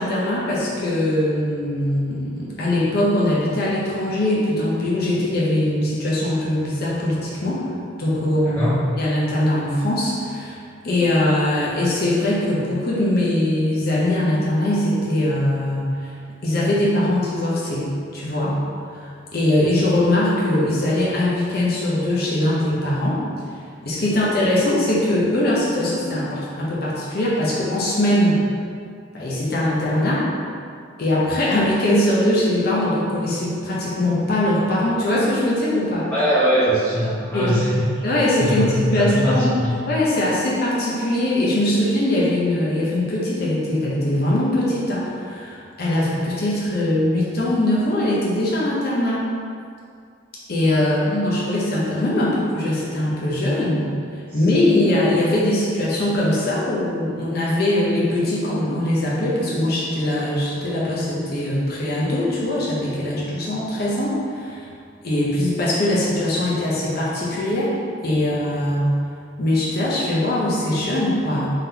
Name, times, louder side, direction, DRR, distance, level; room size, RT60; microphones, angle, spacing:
voice 1, 0.0-7.7 8.0-8.6 8.9-10.6 10.8-16.1 16.4-18.6 18.9-23.2 23.8-28.4 29.1-30.3 31.0-36.1 37.3-37.5 38.0-38.7 38.9-39.5 39.9-49.2 50.5-53.9 54.3-64.7 65.0-67.7 68.0-68.9 69.4-71.5, left 1 dB, 50° left, -7 dB, 0.7 m, -21 dB
voice 2, 8.4-8.8 36.1-37.9 38.4-39.8 50.9-51.1 54.3-54.4, equal, 10° left, -11 dB, 0.6 m, -21 dB
3.7 x 3.7 x 2.8 m, 2.3 s
head